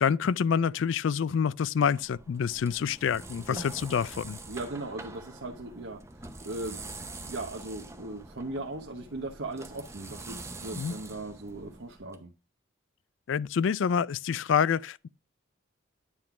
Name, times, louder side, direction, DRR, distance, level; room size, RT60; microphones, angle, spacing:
voice 1, 0.0-4.4 10.8-10.9 13.3-15.1, left 7 dB, 65° left, 0.3 m, -27 dB
sound 1, 1.8-12.2, right 2 dB, 15° right, 0.7 m, -44 dB
voice 2, 4.5-12.3, right 2 dB, 65° right, 0.9 m, -39 dB
9.7 x 3.7 x 5.8 m
head